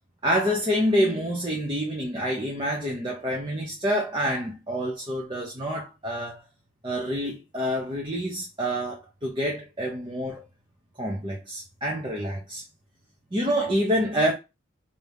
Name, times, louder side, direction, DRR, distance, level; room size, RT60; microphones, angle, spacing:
voice 1, 0.2-6.4 6.8-10.4 11.0-12.6 13.3-14.3, equal, 25° right, 0.7 m, -27 dB
3.3 x 2.7 x 3.4 m
head